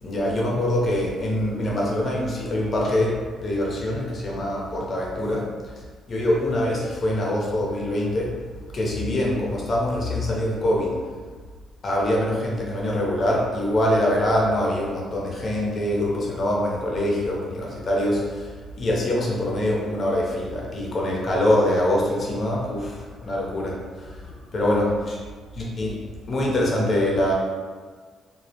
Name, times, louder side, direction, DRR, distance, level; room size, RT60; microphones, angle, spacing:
voice 1, 0.0-5.5 6.1-8.4 8.7-11.0 11.8-25.2 25.5-26.0 26.3-27.3, left 1 dB, 45° left, -3 dB, 0.6 m, -24 dB
2.2 x 2.0 x 2.8 m, 1.5 s
cardioid pair, 90°, 0 cm